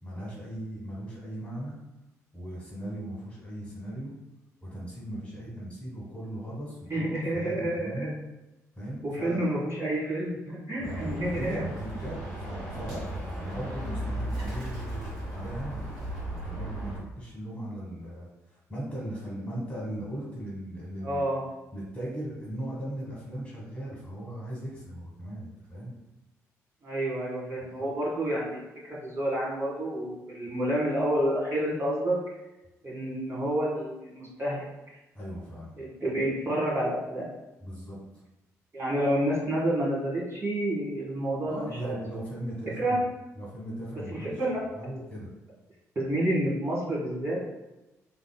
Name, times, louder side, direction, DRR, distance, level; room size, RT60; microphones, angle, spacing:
voice 1, 0.0-1.8 2.3-4.1 4.6-8.2 8.8-9.5 10.8-15.8 16.2-21.3 21.7-25.9 27.8-27.9 35.1-35.8 37.6-38.0 41.5-43.0 43.4-44.4 44.8-45.3, right 1 dB, 15° left, -5 dB, 1.2 m, -38 dB
voice 2, 6.9-7.9 9.0-11.6 21.0-21.4 26.8-28.6 29.0-32.2 32.8-34.6 35.8-37.3 38.7-42.0 42.8-42.9 44.1-44.6 45.9-47.4, right 1 dB, 35° right, -6 dB, 1.5 m, -29 dB
Bird, 10.8-17.0, right 1 dB, 70° right, 1.2 m, -35 dB
3.5 x 2.8 x 2.2 m, 0.98 s
figure-of-eight pair, 40°, 8 cm